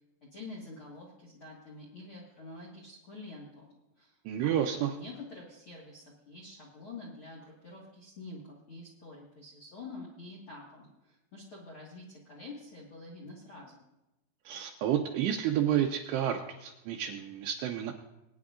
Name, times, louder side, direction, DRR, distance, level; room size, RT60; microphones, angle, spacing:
voice 1, 0.2-13.8, left 2 dB, 55° left, -4 dB, 1.4 m, -47 dB
voice 2, 4.3-4.9 14.5-17.9, right 10 dB, 80° right, 2 dB, 2.6 m, -30 dB
22.0 x 9.6 x 2.5 m, 0.95 s
omnidirectional pair, 5.1 m